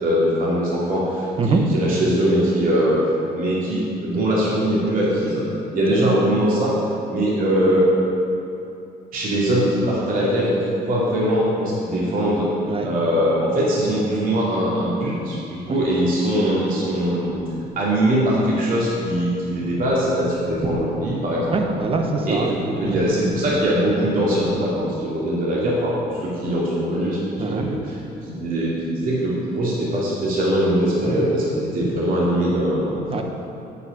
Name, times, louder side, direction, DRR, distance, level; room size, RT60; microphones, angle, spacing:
voice 1, 0.0-3.0 3.3-5.4 5.7-6.7 7.1-7.8 9.1-12.5 12.8-17.4 17.8-21.6 22.3-25.9 26.2-28.0 28.3-32.9, equal, 55° right, -6 dB, 2.6 m, -21 dB
voice 2, 21.5-22.5 22.8-23.0 27.4-27.8 33.1-33.2, right 4 dB, 35° right, 4 dB, 1.1 m, -24 dB
9.1 x 8.4 x 5.4 m, 2.7 s
cardioid pair, 110°, 17 cm